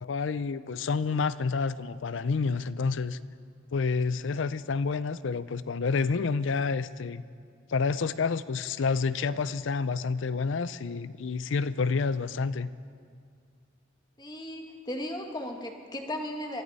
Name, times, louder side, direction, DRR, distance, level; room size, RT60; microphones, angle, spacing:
voice 1, 0.0-3.2 3.7-7.2 7.7-12.7, left 4 dB, 65° left, 16 dB, 0.5 m, -29 dB
voice 2, 14.2-16.6, left 1 dB, 20° left, 2 dB, 1.4 m, -36 dB
23.0 x 14.5 x 4.1 m, 2.2 s
head